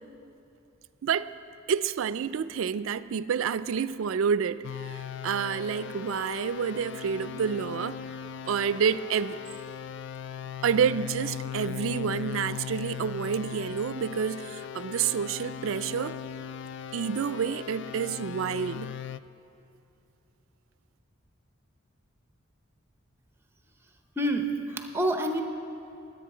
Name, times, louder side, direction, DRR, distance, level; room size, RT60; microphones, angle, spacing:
voice 1, 1.0-1.3 1.7-8.0 8.5-9.4 10.6-16.2 16.9-18.9, right 7 dB, 80° right, 15 dB, 0.4 m, -29 dB
sound 1, 4.6-19.2, left 8 dB, 60° left, 0.3 m, -38 dB
voice 2, 24.2-25.4, right 1 dB, 10° right, 5 dB, 0.8 m, -27 dB
21.5 x 8.3 x 4.9 m, 2.7 s
head